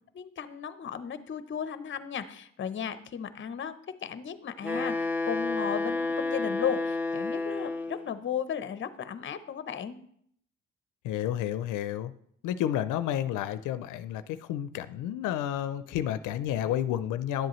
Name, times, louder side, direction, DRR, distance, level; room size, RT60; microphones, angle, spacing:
voice 1, 0.1-3.7 4.0-10.0, left 8 dB, 40° left, 12 dB, 0.7 m, -35 dB
Wind instrument woodwind instrument, 4.6-8.1, left 3 dB, 5° right, 0.9 m, -30 dB
voice 2, 11.0-12.1 12.4-14.2 14.5-17.5, left 11 dB, 85° left, 12 dB, 0.5 m, -30 dB
10.5 x 7.6 x 3.1 m, 0.68 s
cardioid pair, 90°, 30 cm